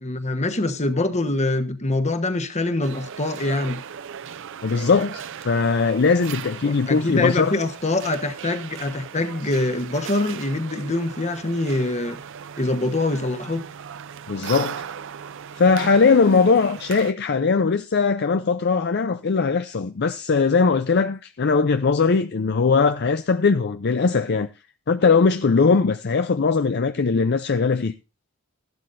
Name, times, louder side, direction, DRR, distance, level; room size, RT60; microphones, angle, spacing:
voice 1, 0.0-3.8 6.6-12.2 12.6-13.6, left 2 dB, 30° left, 1.3 m, -24 dB
sound 1, 2.8-17.1, right 8 dB, 60° right, 0.5 m, -37 dB
voice 2, 4.6-7.5 14.3-14.8 15.6-24.5 24.9-27.9, left 4 dB, 50° left, 0.5 m, -20 dB
14.5 x 12.0 x 2.6 m
head